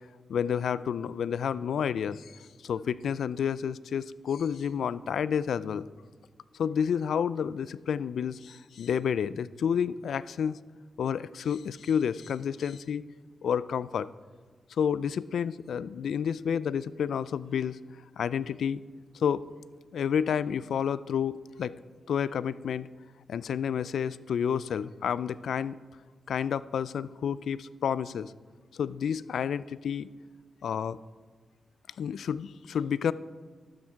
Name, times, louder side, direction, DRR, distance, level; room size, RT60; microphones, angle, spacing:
voice 1, 0.3-5.9 6.6-10.6 11.0-13.0 13.4-14.1 14.7-17.8 18.2-18.8 19.1-19.4 19.9-21.7 22.1-22.9 23.3-25.8 26.3-28.3 28.7-30.1 30.6-31.0 32.0-33.1, left 7 dB, 80° left, 18 dB, 0.3 m, -30 dB
12.0 x 9.0 x 4.6 m, 1.5 s
cardioid pair, 60°, 0 cm